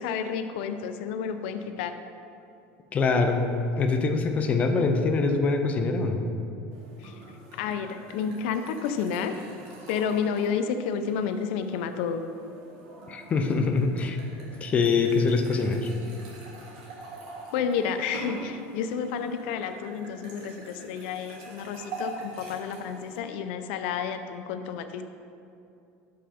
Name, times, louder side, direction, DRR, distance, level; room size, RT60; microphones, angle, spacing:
voice 1, 0.0-1.9 7.0-7.2 7.5-9.3 9.9-12.2 17.5-25.0, left 7 dB, 80° left, 8 dB, 0.5 m, -30 dB
voice 2, 2.9-3.5 3.8-6.2 13.1-14.2 14.6-15.9, left 4 dB, 25° left, 5 dB, 0.5 m, -24 dB
sound 1, 6.7-23.2, right 2 dB, 65° right, 1.8 m, -45 dB
6.8 x 5.6 x 4.9 m, 2.6 s
cardioid pair, 155°, 6 cm